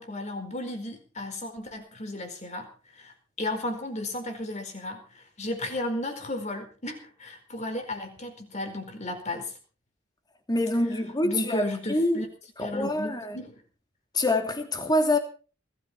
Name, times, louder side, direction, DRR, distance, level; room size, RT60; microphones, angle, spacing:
voice 1, 0.0-9.5 11.2-12.3 12.6-13.6, left 1 dB, 35° left, 4.7 m, -34 dB
voice 2, 10.5-12.2 12.6-13.4 14.1-15.2, left 1 dB, 20° left, 2.9 m, -26 dB
21.0 x 13.5 x 4.5 m
head